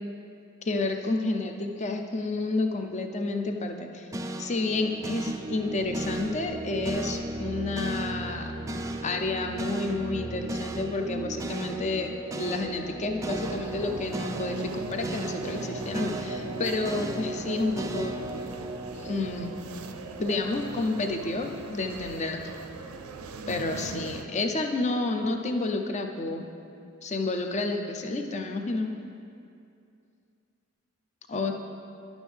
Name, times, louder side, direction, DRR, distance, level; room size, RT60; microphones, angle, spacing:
voice 1, 0.6-4.1 4.4-8.5 9.0-18.2 18.9-19.5 20.2-22.4 23.5-26.5 27.0-28.9 31.3-31.5, left 2 dB, 35° left, 4 dB, 0.5 m, -30 dB
sound 1, 4.1-20.4, right 1 dB, 15° right, 0.3 m, -35 dB
sound 2, 13.4-24.2, right 3 dB, 90° right, 0.5 m, -41 dB
11.5 x 6.2 x 3.4 m, 2.5 s
head